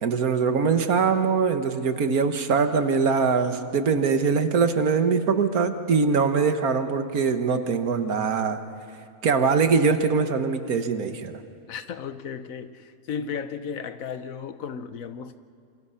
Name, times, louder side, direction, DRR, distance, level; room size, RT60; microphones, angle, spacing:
voice 1, 0.0-8.6 9.2-11.4, right 5 dB, 75° right, 8 dB, 1.7 m, -22 dB
voice 2, 11.7-15.4, left 6 dB, 65° left, 12 dB, 1.2 m, -34 dB
27.5 x 26.0 x 5.7 m, 2.4 s
omnidirectional pair, 1.6 m